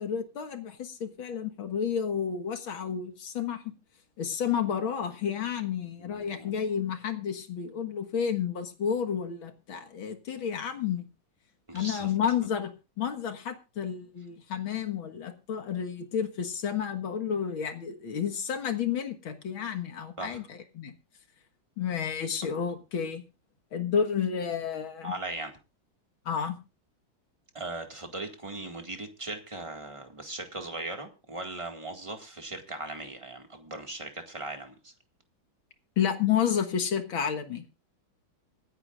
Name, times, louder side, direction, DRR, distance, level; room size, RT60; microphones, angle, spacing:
voice 1, 0.0-3.7 4.2-11.0 11.7-20.9 21.8-23.2 23.7-25.1 26.3-26.5 36.0-37.6, left 8 dB, 80° left, 2.4 m, -31 dB
voice 2, 6.0-6.6 11.7-12.1 20.2-20.4 22.5-22.7 25.0-25.5 27.5-34.9, right 2 dB, 15° right, 1.9 m, -39 dB
25.5 x 9.8 x 2.5 m
omnidirectional pair, 2.2 m